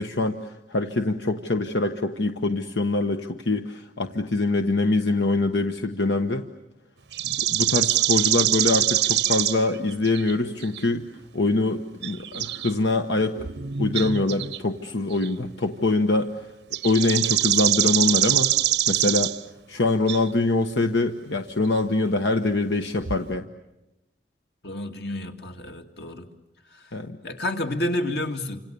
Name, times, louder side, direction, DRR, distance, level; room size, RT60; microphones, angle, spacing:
voice 1, 0.0-6.5 7.2-11.0 11.3-13.4 13.8-16.5 16.8-18.5 18.9-19.4 19.7-23.5 26.9-27.2, left 2 dB, 85° left, 6 dB, 1.2 m, -24 dB
sound 1, 7.1-9.6 9.9-10.3 10.6-10.8 12.0-12.7 13.2-14.6 15.1-15.3 16.7-19.4 20.1-20.3 23.0-23.2, right 12 dB, 85° right, 0.9 m, -23 dB
voice 2, 24.6-26.3 27.2-28.6, left 1 dB, 65° left, 4 dB, 2.4 m, -29 dB
29.5 x 27.0 x 7.0 m, 0.96 s
head